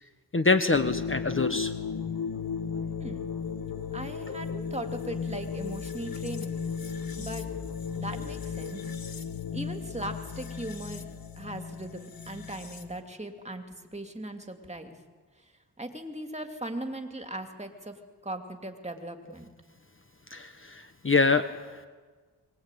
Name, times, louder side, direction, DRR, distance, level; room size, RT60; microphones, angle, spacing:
voice 1, 0.3-1.7 4.3-4.4 20.3-21.4, left 3 dB, 30° left, 8 dB, 1.3 m, -25 dB
sound 1, 0.7-13.0, left 6 dB, 55° left, 1.9 m, -35 dB
voice 2, 3.9-6.6 7.2-7.4 8.0-8.8 9.5-11.0 11.4-13.6 13.9-14.9 15.8-18.0 18.2-19.5, right 1 dB, 15° right, 5 dB, 2.8 m, -38 dB
23.0 x 20.0 x 9.2 m, 1.5 s
cardioid pair, 75°, 42 cm